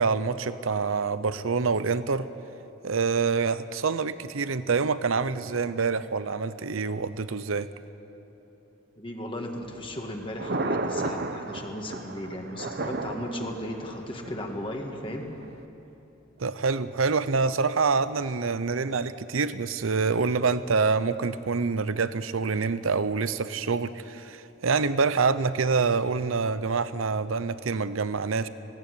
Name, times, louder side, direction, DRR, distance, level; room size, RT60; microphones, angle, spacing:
voice 1, 0.0-2.3 2.8-7.7 16.4-28.5, right 4 dB, 85° right, 14 dB, 0.7 m, -26 dB
voice 2, 9.0-15.4, left 1 dB, 25° left, 2 dB, 1.7 m, -36 dB
Thunder, 9.6-15.6, right 2 dB, 50° right, 1.0 m, -34 dB
19.0 x 17.5 x 9.6 m, 3.0 s
head